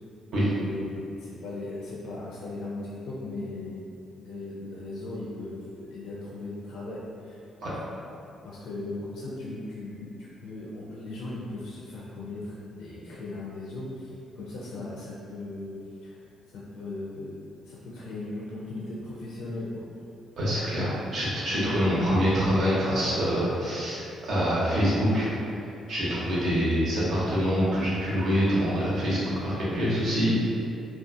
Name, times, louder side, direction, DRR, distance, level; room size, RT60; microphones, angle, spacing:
voice 1, 0.6-3.8 4.1-7.4 8.4-10.2 10.4-15.8 16.0-16.2 16.5-17.3 17.6-19.9 21.6-21.8, left 2 dB, 80° left, -6 dB, 0.4 m, -38 dB
voice 2, 20.4-25.3 25.9-30.3, equal, 65° right, -8 dB, 0.8 m, -25 dB
2.4 x 2.2 x 2.5 m, 2.6 s
cardioid pair, 90°, 0 cm